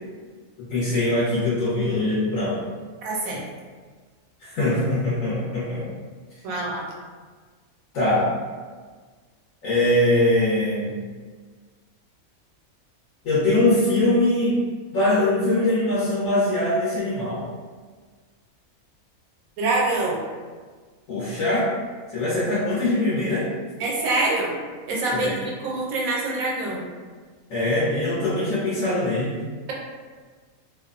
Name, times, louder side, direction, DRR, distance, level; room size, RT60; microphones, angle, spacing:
voice 1, 0.6-2.6 4.4-5.9 7.9-8.3 9.6-10.9 13.2-14.6 14.9-17.4 21.1-21.7 22.1-23.5 25.1-25.3 27.5-29.4, left 1 dB, 80° left, -10 dB, 1.2 m, -22 dB
voice 2, 3.0-3.4 6.4-6.9 19.6-20.2 23.8-24.6 24.9-26.9, right 2 dB, 90° right, -3 dB, 1.1 m, -25 dB
2.9 x 2.0 x 2.4 m, 1.5 s
omnidirectional pair, 1.4 m